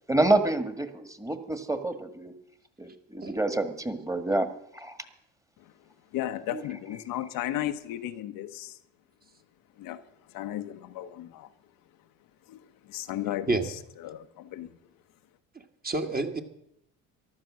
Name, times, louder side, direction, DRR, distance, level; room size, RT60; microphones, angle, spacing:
voice 1, 0.1-2.3 2.8-4.5 4.7-5.0, right 2 dB, 10° right, 1.8 m, -27 dB
voice 2, 3.2-3.6 6.5-6.6 13.5-13.7 15.8-16.4, right 3 dB, 25° right, 1.9 m, -29 dB
voice 3, 6.1-8.8 9.8-11.5 12.5-13.6 14.0-14.7, left 12 dB, 65° left, 1.1 m, -35 dB
14.5 x 11.5 x 6.3 m
hypercardioid pair, 70°, 36 cm